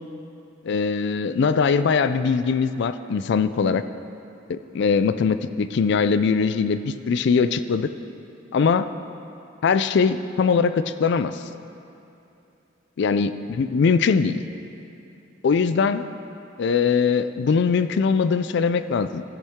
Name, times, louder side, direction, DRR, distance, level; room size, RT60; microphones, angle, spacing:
voice 1, 0.6-3.8 4.5-7.9 8.5-8.9 9.6-11.4 13.0-14.4 15.4-16.1 16.6-19.2, left 5 dB, 60° left, 12 dB, 0.4 m, -21 dB
13.5 x 9.9 x 3.6 m, 2.7 s
head